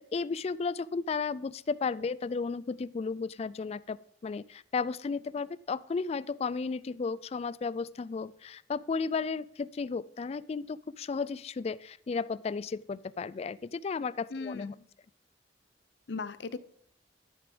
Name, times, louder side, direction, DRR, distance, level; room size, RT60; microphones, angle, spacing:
voice 1, 0.1-4.0 4.2-14.7, left 4 dB, 35° left, 20 dB, 0.3 m, -34 dB
voice 2, 14.3-14.9 16.1-16.6, left 4 dB, 70° left, 15 dB, 0.6 m, -38 dB
12.0 x 7.0 x 5.1 m, 0.64 s
head